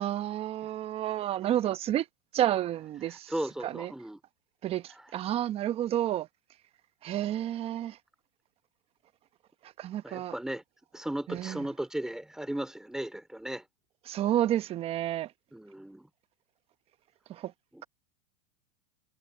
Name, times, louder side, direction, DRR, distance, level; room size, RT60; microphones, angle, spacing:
voice 1, 0.0-2.1 2.3-3.3 3.6-3.9 4.6-6.3 7.0-8.0 9.8-10.3 11.3-11.6 14.1-15.3 17.3-17.5, right 12 dB, 35° right, 1.1 m, -30 dB
voice 2, 3.3-4.2 10.0-10.6 10.9-13.6 15.5-16.1 17.7-17.8, right 1 dB, 5° right, 3.4 m, -36 dB
supercardioid pair, 125°, 18 cm